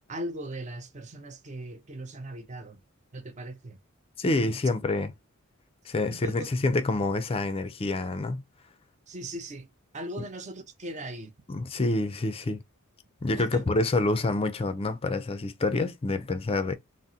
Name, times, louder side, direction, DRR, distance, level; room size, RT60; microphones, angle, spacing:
voice 1, 0.1-2.8 3.1-3.8 6.1-6.5 9.1-9.7 9.9-11.3 13.4-13.7, right 1 dB, 35° right, 0.5 m, -39 dB
voice 2, 4.2-5.1 5.9-8.4 11.5-12.6 13.2-16.8, left 2 dB, 25° left, 0.4 m, -27 dB
3.6 x 2.0 x 2.7 m
head